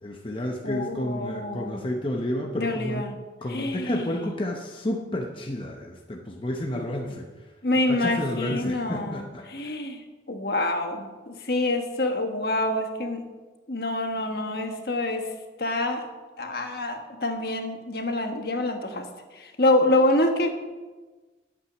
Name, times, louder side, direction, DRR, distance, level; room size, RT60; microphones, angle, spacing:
voice 1, 0.0-3.0 3.4-7.3 7.9-9.7, left 1 dB, 30° left, 1 dB, 0.8 m, -31 dB
voice 2, 0.6-1.8 2.6-3.2 3.5-4.2 6.7-6.8 7.6-10.0 10.3-13.2 13.7-15.3 15.6-16.0 16.4-19.0 19.3-20.5, left 1 dB, 55° left, 5 dB, 1.3 m, -26 dB
11.0 x 8.8 x 6.1 m, 1.3 s
head